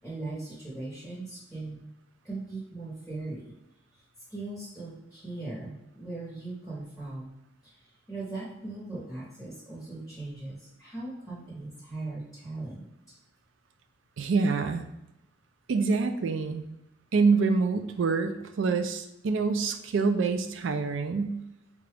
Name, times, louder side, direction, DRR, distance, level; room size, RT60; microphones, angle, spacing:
voice 1, 0.0-1.9 2.2-3.5 3.9-4.0 4.3-7.3 7.6-12.9, right 2 dB, ahead, -8 dB, 0.9 m, -39 dB
voice 2, 14.2-14.9 15.7-16.7 17.1-21.4, right 4 dB, 75° right, 8 dB, 0.4 m, -26 dB
3.8 x 2.3 x 3.3 m, 0.92 s
head